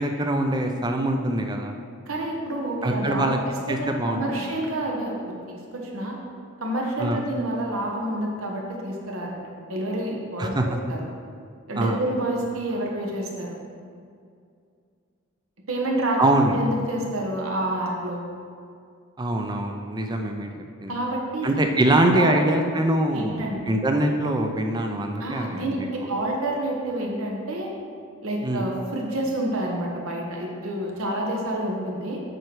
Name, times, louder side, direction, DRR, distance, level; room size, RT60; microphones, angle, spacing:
voice 1, 0.0-1.7 2.8-3.4 3.7-4.5 7.0-7.2 10.4-10.7 11.8-12.0 16.2-16.7 19.2-20.5 20.8-21.0 21.4-25.9 28.4-28.7, right 1 dB, 20° right, 4 dB, 0.4 m, -23 dB
voice 2, 2.1-3.3 3.7-6.2 6.6-11.1 11.7-13.6 15.7-16.2 16.5-18.2 20.9-21.5 21.8-22.4 23.1-23.6 25.2-27.7 28.2-32.2, right 1 dB, 75° right, -1 dB, 1.2 m, -28 dB
7.8 x 4.5 x 4.6 m, 2.3 s
head